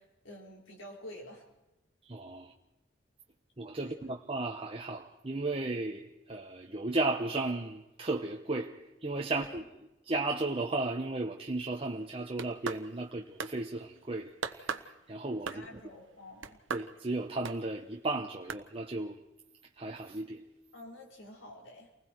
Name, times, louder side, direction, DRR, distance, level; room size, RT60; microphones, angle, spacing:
voice 1, 0.0-1.5 3.8-3.9 9.3-9.5 15.5-16.6 20.7-21.9, left 1 dB, 80° left, 4.8 m, -49 dB
voice 2, 2.1-2.5 3.6-9.6 10.0-15.8 16.7-19.2 19.8-20.4, right 2 dB, 30° right, 1.1 m, -35 dB
sound 1, 12.1-13.1 13.4-13.6 14.4-14.9 15.4-15.8 16.4-16.9 17.4-17.6 18.5-18.6, right 5 dB, 80° right, 1.2 m, -37 dB
30.0 x 20.5 x 4.7 m
head